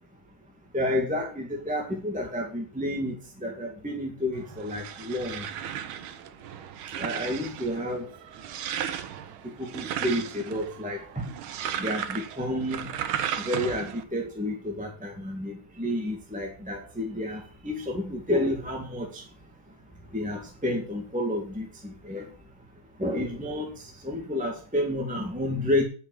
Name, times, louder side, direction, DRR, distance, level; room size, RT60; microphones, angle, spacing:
voice 1, 0.7-5.4 7.0-8.1 9.6-11.3 11.8-12.9 13.5-19.2 20.1-22.2 23.0-23.7 24.0-25.8, left 1 dB, 5° right, 1 dB, 1.6 m, -30 dB
sound 1, 4.4-14.0, right 9 dB, 80° right, 1.7 m, -35 dB
9.8 x 5.8 x 7.7 m, 0.39 s
omnidirectional pair, 2.3 m